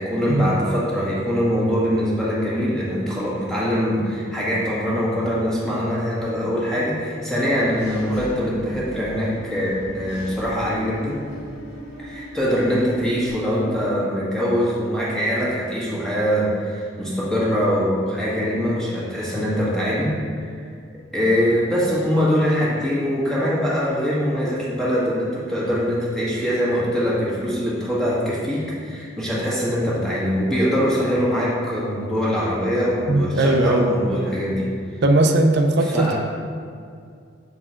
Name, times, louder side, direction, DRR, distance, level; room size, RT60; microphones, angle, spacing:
voice 1, 0.0-11.2 12.0-20.5 21.1-34.7 35.8-36.2, equal, 5° left, -8 dB, 1.6 m, -23 dB
Engine / Mechanisms, 7.4-13.3, equal, 35° left, 1.7 m, -39 dB
voice 2, 33.1-33.9 35.0-36.2, right 2 dB, 60° right, 4 dB, 0.5 m, -18 dB
6.9 x 4.4 x 4.4 m, 2.3 s
head